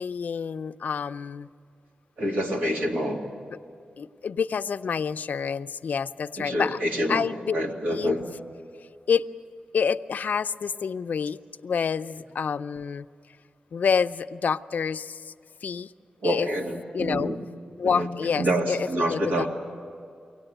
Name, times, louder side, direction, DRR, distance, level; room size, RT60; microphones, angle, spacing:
voice 1, 0.0-1.5 4.0-6.8 7.1-7.5 7.9-8.3 9.1-9.3 9.7-13.1 13.7-15.3 15.6-15.9 16.2-16.5 16.9-17.3 17.8-19.5, left 6 dB, 70° left, 11 dB, 0.5 m, -28 dB
voice 2, 2.2-3.2 6.4-7.2 7.5-8.2 16.2-17.4 17.8-18.1 18.4-19.5, equal, 85° right, 1 dB, 2.5 m, -27 dB
24.0 x 17.5 x 9.0 m, 2.4 s
wide cardioid pair, 130°, 3 cm